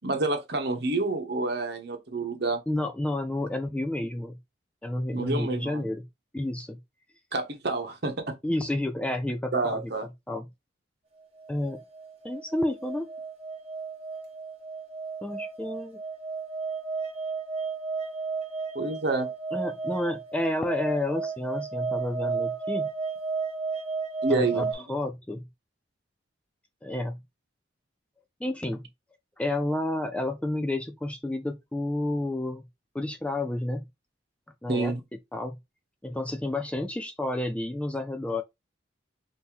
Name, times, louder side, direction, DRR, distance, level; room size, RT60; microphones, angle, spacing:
voice 1, 0.0-2.6 5.1-5.8 7.3-8.3 9.5-10.0 18.7-19.3 24.2-24.8 34.7-35.0, right 3 dB, 55° right, 1.1 m, -28 dB
voice 2, 2.7-4.4 4.8-6.0 6.3-6.8 8.4-9.8 10.3-10.5 11.5-11.8 12.2-13.1 15.2-16.0 19.5-22.9 24.3-25.4 26.8-27.2 28.4-28.9 29.4-32.7 32.9-33.8 34.6-35.0 35.3-35.6 36.0-38.4, left 1 dB, 5° left, 0.3 m, -30 dB
sound 1, 11.4-24.7, right 4 dB, 30° right, 1.4 m, -33 dB
5.4 x 2.7 x 2.9 m
head